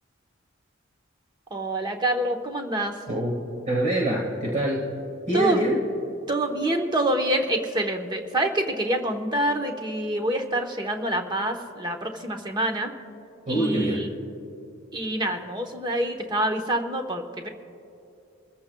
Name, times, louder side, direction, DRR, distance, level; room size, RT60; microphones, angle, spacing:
voice 1, 1.5-3.0 5.3-5.6 6.3-12.9 13.5-14.1 14.9-17.5, right 1 dB, 20° right, 4 dB, 1.0 m, -26 dB
voice 2, 3.7-4.9 5.3-5.8 13.4-14.0, right 1 dB, 40° right, -3 dB, 1.7 m, -24 dB
28.5 x 14.5 x 2.3 m, 2.8 s
head